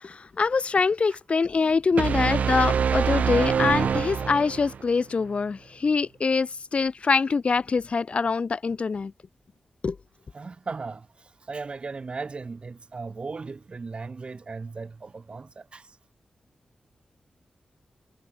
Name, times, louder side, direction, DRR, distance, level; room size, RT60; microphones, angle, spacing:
voice 1, 0.0-9.1 9.8-10.0, left 4 dB, 50° left, 1.2 m, -24 dB
sound 1, 2.0-4.9, right 7 dB, 80° right, 0.7 m, -25 dB
voice 2, 10.3-16.0, right 4 dB, 45° right, 5.1 m, -37 dB
wide cardioid pair, 90°, 3 cm